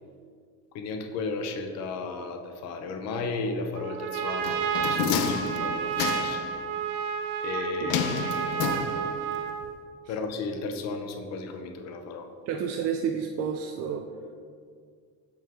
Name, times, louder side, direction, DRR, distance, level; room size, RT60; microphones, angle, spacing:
voice 1, 0.7-6.4 7.4-8.4 10.1-12.3, left 3 dB, 45° left, 5 dB, 0.7 m, -34 dB
Trumpet, 3.7-9.7, right 7 dB, 70° right, 0.8 m, -30 dB
sound 1, 4.4-6.5 7.9-9.3 9.6-9.7, left 7 dB, 85° left, 0.6 m, -30 dB
voice 2, 12.5-14.0, right 7 dB, 40° right, 2 dB, 0.4 m, -30 dB
7.2 x 5.6 x 3.6 m, 2.1 s
cardioid pair, 155°, 38 cm